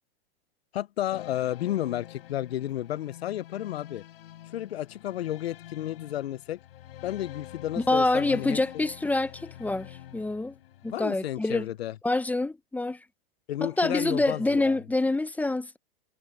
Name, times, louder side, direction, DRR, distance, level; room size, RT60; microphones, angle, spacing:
voice 1, 0.7-4.0 4.5-6.6 7.0-8.8 10.9-12.0 13.5-14.8, left 13 dB, 85° left, 0.6 m, -32 dB
sound 1, 1.1-10.9, left 13 dB, 70° left, 5.7 m, -46 dB
voice 2, 7.8-10.5 10.8-11.7 12.0-13.0 13.6-15.8, left 2 dB, 5° left, 1.0 m, -26 dB
hypercardioid pair, 130°, 30 cm